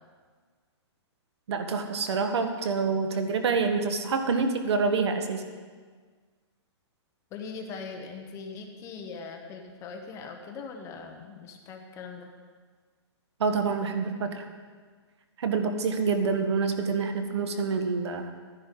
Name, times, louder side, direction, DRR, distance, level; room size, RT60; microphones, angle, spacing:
voice 1, 1.5-5.4 13.4-14.4 15.4-18.3, right 4 dB, 70° right, 7 dB, 1.3 m, -27 dB
voice 2, 7.3-12.3, left 5 dB, 20° left, 3 dB, 0.9 m, -41 dB
12.5 x 10.0 x 3.8 m, 1.5 s
hypercardioid pair, 155°, 15 cm